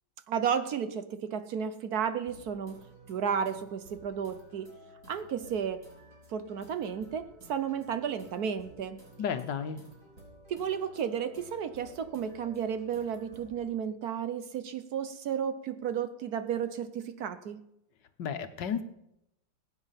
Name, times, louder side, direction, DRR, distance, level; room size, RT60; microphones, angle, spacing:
voice 1, 0.3-2.8 3.1-4.7 5.1-5.8 6.3-9.0 10.5-17.6, right 7 dB, 65° right, 11 dB, 1.2 m, -33 dB
sound 1, 2.1-13.6, right 1 dB, 45° right, 4.7 m, -54 dB
voice 2, 9.2-9.8 18.2-18.8, left 7 dB, 70° left, 9 dB, 1.6 m, -32 dB
21.0 x 9.1 x 5.7 m, 0.84 s
omnidirectional pair, 2.0 m